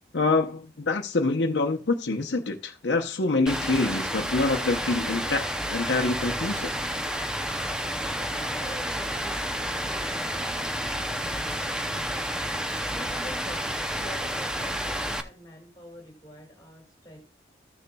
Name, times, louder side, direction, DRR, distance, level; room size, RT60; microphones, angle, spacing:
voice 1, 0.1-6.7, left 3 dB, 80° left, 0.8 m, -26 dB
Rain, 3.5-15.2, equal, 5° right, 0.6 m, -30 dB
voice 2, 8.1-12.4 12.9-17.2, equal, 20° left, 1.9 m, -46 dB
14.5 x 6.7 x 2.3 m
head